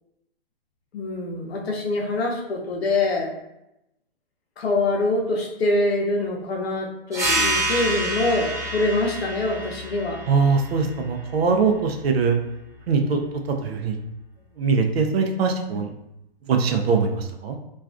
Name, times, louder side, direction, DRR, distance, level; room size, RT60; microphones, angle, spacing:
voice 1, 0.9-3.3 4.6-10.2, left 2 dB, 85° left, 1 dB, 0.7 m, -24 dB
sound 1, 7.1-12.3, right 1 dB, 10° right, 0.6 m, -28 dB
voice 2, 10.3-12.4 12.9-13.2 13.5-14.0 14.6-15.9 16.5-17.6, right 5 dB, 80° right, 5 dB, 0.5 m, -22 dB
2.3 x 2.3 x 2.4 m, 0.87 s
hypercardioid pair, 130°, 30 cm